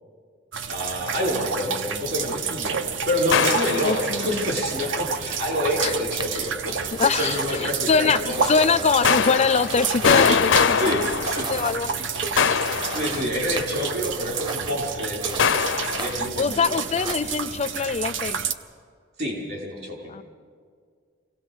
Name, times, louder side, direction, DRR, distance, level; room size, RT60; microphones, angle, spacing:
sound 1, 0.5-18.5, right 6 dB, 75° right, 0.8 m, -30 dB
voice 1, 0.7-8.7 10.8-11.5 12.7-17.0 19.2-20.1, equal, 55° right, -1 dB, 5.4 m, -28 dB
sound 2, 3.3-4.4 9.0-11.9 12.4-13.7 15.4-16.3, left 6 dB, 80° left, 0.6 m, -23 dB
voice 2, 3.8-4.4 5.8-5.9 6.3-6.5 7.0-8.2 8.5-12.1 16.4-18.4 20.1-20.2, left 5 dB, 35° left, 15 dB, 0.4 m, -23 dB
sound 3, 5.8-16.5 16.7-18.2, right 3 dB, 25° right, 0.8 m, -37 dB
24.5 x 17.0 x 6.3 m, 2.1 s
head